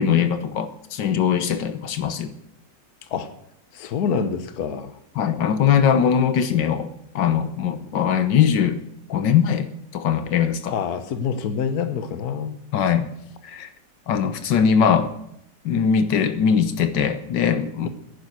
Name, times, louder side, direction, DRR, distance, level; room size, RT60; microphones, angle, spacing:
voice 1, 0.0-2.3 5.2-6.9 7.2-8.8 9.1-9.7 9.9-10.8 12.7-13.1 13.4-13.7 14.1-15.1 15.7-17.9, left 7 dB, 85° left, 10 dB, 1.7 m, -21 dB
voice 2, 3.7-4.9 10.7-12.5, left 6 dB, 60° left, 10 dB, 1.5 m, -26 dB
11.0 x 10.0 x 9.3 m, 0.76 s
omnidirectional pair, 1.9 m